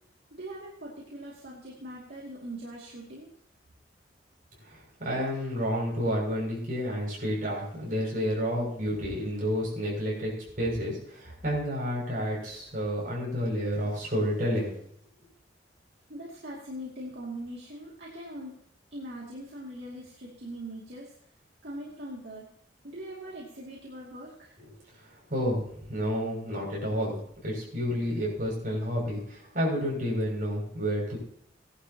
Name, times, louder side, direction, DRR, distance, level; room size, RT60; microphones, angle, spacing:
voice 1, 0.4-3.3 16.1-18.5 18.9-21.1 21.6-22.5 22.8-24.6, right 1 dB, 65° right, -4 dB, 2.5 m, -41 dB
voice 2, 4.6-14.7 25.0-31.2, equal, 45° right, -3 dB, 6.6 m, -30 dB
18.0 x 11.0 x 2.9 m, 0.68 s
head